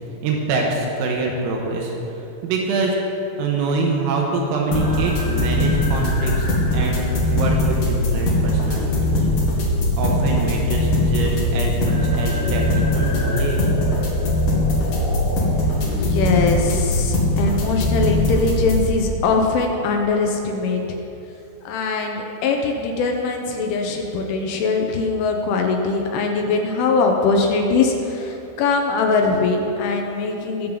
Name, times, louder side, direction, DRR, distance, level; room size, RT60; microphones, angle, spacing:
voice 1, 0.2-1.9 2.4-3.0 3.4-7.0 7.3-9.2 10.0-13.6, right 3 dB, 85° right, 0 dB, 3.9 m, -24 dB
sound 1, 4.7-18.9, left 1 dB, 50° left, 2.8 m, -20 dB
voice 2, 15.9-20.8 21.7-30.8, left 4 dB, 75° left, 2 dB, 3.2 m, -21 dB
22.0 x 7.4 x 3.9 m, 2.9 s
omnidirectional pair, 5.9 m